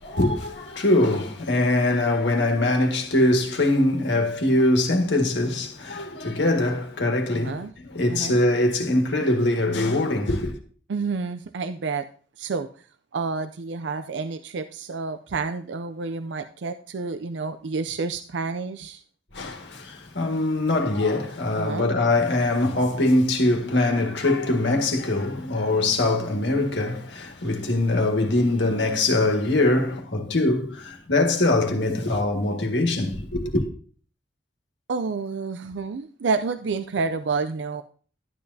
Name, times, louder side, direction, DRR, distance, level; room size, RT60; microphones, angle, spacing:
voice 1, 0.0-10.6 19.3-33.7, left 2 dB, 75° left, 1.8 m, -23 dB
voice 2, 7.3-7.7 8.1-8.4 10.9-12.1 12.4-12.7 13.1-19.0 21.6-21.9 34.9-37.8, right 4 dB, 75° right, 0.5 m, -29 dB
12.0 x 9.5 x 2.7 m
head